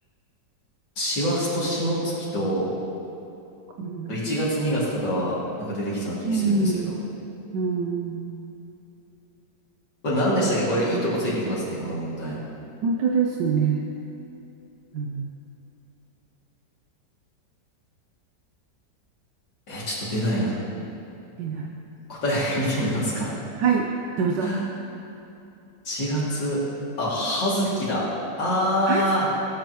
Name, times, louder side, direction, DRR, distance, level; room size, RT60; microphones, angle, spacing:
voice 1, 1.0-2.7 4.1-5.4 5.7-7.0 10.0-12.4 19.7-20.6 22.1-23.3 24.4-24.7 25.8-26.6 27.0-28.1 28.4-29.3, equal, 80° left, -8 dB, 3.4 m, -25 dB
voice 2, 3.8-4.2 6.2-7.0 7.5-8.3 12.8-13.9 14.9-15.3 21.4-21.7 23.6-23.9 24.2-24.5 28.9-29.0, right 5 dB, 75° right, 0 dB, 1.3 m, -24 dB
17.0 x 8.8 x 3.1 m, 2.9 s
omnidirectional pair, 2.0 m